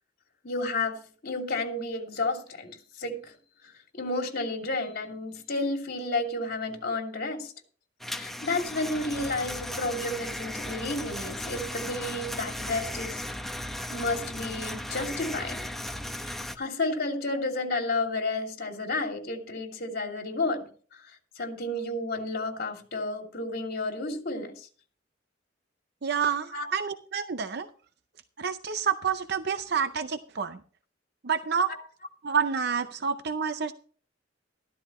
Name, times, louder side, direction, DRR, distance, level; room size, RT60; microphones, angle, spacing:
voice 1, 0.4-3.3 3.9-7.5 8.2-13.2 13.9-15.6 16.2-20.7 21.4-24.7 26.5-26.8 31.7-31.8, left 2 dB, 55° left, 3 dB, 2.8 m, -31 dB
sound 1, 8.0-16.6, left 1 dB, ahead, 0.9 m, -36 dB
voice 2, 26.0-27.7 28.4-30.6 31.2-31.7 32.2-33.7, right 6 dB, 60° right, 10 dB, 0.6 m, -28 dB
14.0 x 13.0 x 3.1 m, 0.41 s
head